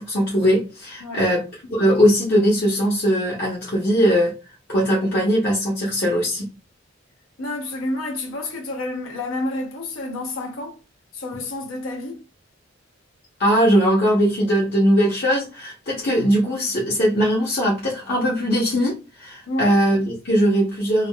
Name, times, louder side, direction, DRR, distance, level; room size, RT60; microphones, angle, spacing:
voice 1, 0.0-1.4 1.7-4.3 4.7-6.5 13.4-21.1, equal, 50° left, 0.7 m, -20 dB
voice 2, 7.4-10.8 11.1-12.2 19.5-19.7, left 2 dB, 85° left, 0.8 m, -29 dB
3.4 x 2.1 x 2.2 m
head